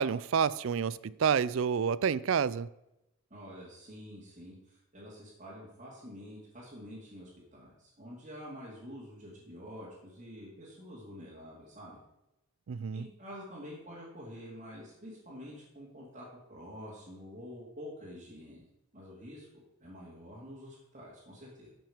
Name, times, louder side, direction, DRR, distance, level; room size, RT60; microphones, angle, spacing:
voice 1, 0.0-2.7 12.7-13.0, right 7 dB, 65° right, 0.4 m, -29 dB
voice 2, 3.3-12.0 12.9-21.7, equal, 35° right, 2.5 m, -48 dB
12.5 x 6.1 x 5.0 m
head